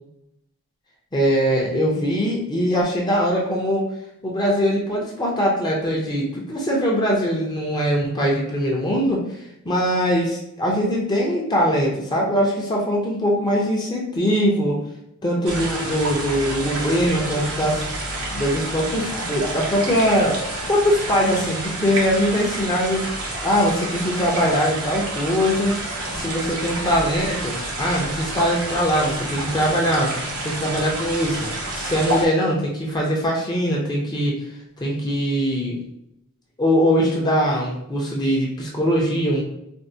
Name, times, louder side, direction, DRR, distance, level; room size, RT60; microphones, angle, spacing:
voice 1, 1.1-3.9 4.2-9.4 9.6-14.8 15.2-17.9 18.3-20.4 20.7-23.1 23.4-25.8 26.1-31.5 31.7-34.4 34.8-35.8 36.6-39.4, equal, 20° left, -3 dB, 0.6 m, -22 dB
sound 1, 15.4-32.2, right 1 dB, 85° right, 0.8 m, -29 dB
4.3 x 2.1 x 2.6 m, 0.80 s
head